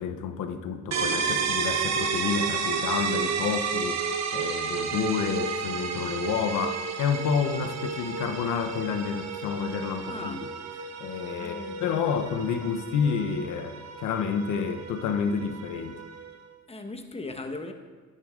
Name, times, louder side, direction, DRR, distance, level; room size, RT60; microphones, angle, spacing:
voice 1, 0.0-10.5 11.0-16.0, left 6 dB, 90° left, 0.9 m, -29 dB
sound 1, 0.9-16.5, right 5 dB, 60° right, 1.2 m, -32 dB
voice 2, 10.0-10.4 11.3-12.2 16.7-17.7, left 2 dB, 20° left, 1.2 m, -38 dB
12.0 x 10.5 x 3.7 m
cardioid pair, 90°, 30 cm